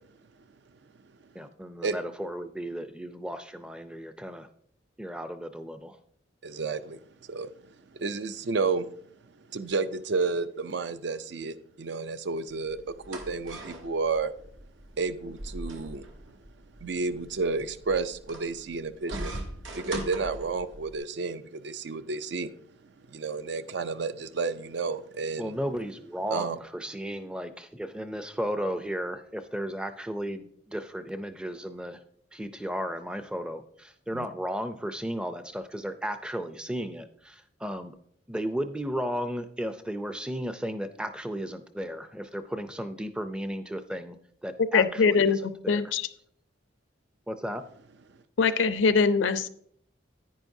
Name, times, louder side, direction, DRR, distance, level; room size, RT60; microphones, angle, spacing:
voice 1, 1.3-4.5 5.0-6.0 25.4-32.0 32.3-37.9 38.3-44.2 44.4-45.3 45.6-45.9 47.3-47.6, equal, 5° right, 0.4 m, -34 dB
voice 2, 6.4-7.0 7.3-7.5 7.9-8.9 9.5-14.3 15.0-16.1 16.8-19.3 19.7-22.5 23.1-25.6 26.3-26.6 34.1-34.3, right 4 dB, 60° right, 0.4 m, -31 dB
sound 1, 12.5-21.0, right 1 dB, 80° right, 1.3 m, -41 dB
voice 3, 44.6-46.1 48.4-49.5, left 5 dB, 75° left, 0.5 m, -23 dB
10.5 x 9.5 x 2.7 m
head